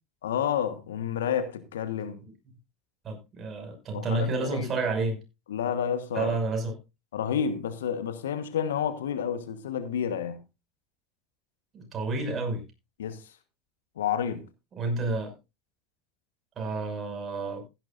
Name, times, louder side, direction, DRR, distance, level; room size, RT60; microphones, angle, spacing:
voice 1, 0.2-2.2 3.9-4.8 5.5-6.3 7.1-10.4 13.0-13.2 14.0-14.5, left 8 dB, 80° left, 1.3 m, -30 dB
voice 2, 3.0-5.2 6.1-6.7 11.7-12.6 14.8-15.3 16.6-17.6, right 3 dB, 35° right, 6.0 m, -30 dB
16.0 x 10.5 x 2.6 m
hypercardioid pair, 75°, 0 cm